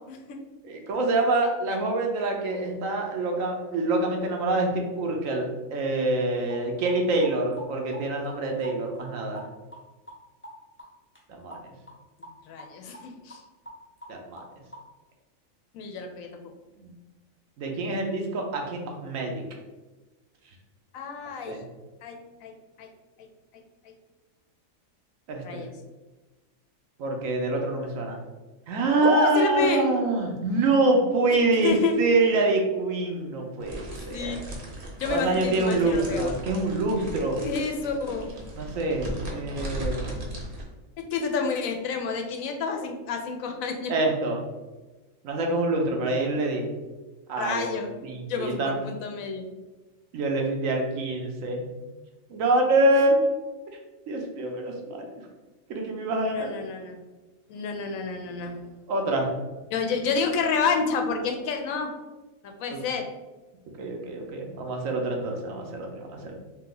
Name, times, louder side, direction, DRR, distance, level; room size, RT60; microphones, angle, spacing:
voice 1, 0.1-0.4 12.5-13.4 15.7-16.3 20.9-21.6 22.0-22.5 22.8-22.9 23.8-23.9 25.4-25.7 29.0-29.9 31.3-31.9 34.1-34.4 35.0-36.3 37.4-38.3 41.0-43.9 47.4-47.9 48.3-49.5 52.9-53.2 56.2-57.0 57.5-58.6 59.7-61.9 62.4-63.1, left 5 dB, 85° left, 4 dB, 1.1 m, -29 dB
voice 2, 0.6-9.4 11.3-11.7 14.1-14.4 16.8-16.9 17.6-19.4 21.5-21.6 25.3-25.6 27.0-28.2 28.7-34.3 35.1-37.4 38.6-40.1 43.9-44.4 45.2-46.7 47.3-47.7 48.0-48.8 50.1-51.6 52.3-53.1 54.1-55.1 55.7-56.5 58.9-59.3 62.7-62.8 63.8-66.3, right 2 dB, 80° right, 2 dB, 1.1 m, -26 dB
sound 1, 6.5-6.6 6.9-7.7 7.9-8.7 9.0-9.1 9.4-9.5 9.7-9.8 10.1-10.2 10.4-10.5 10.8-10.9 11.2-11.3 11.5-11.6 11.9-12.3 12.6-12.7 12.9-13.0 13.3-13.4 13.7-14.5 14.7-14.8, right 1 dB, 15° left, 0.5 m, -43 dB
sound 2, 33.6-40.6, right 1 dB, 55° right, 1.0 m, -37 dB
3.4 x 2.9 x 3.7 m, 1.2 s
omnidirectional pair, 1.4 m